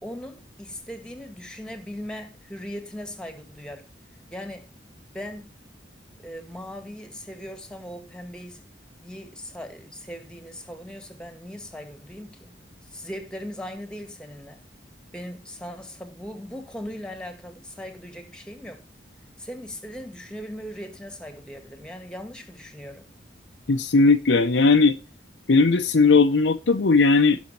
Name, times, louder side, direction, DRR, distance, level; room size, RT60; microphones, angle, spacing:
voice 1, 0.0-3.9 4.3-4.7 5.1-5.8 6.2-8.7 9.0-12.6 12.8-14.6 15.1-18.8 19.4-23.1, equal, 5° left, 1.9 m, -39 dB
voice 2, 23.7-24.9 25.5-27.4, left 3 dB, 75° left, 0.7 m, -18 dB
16.5 x 6.4 x 4.2 m
head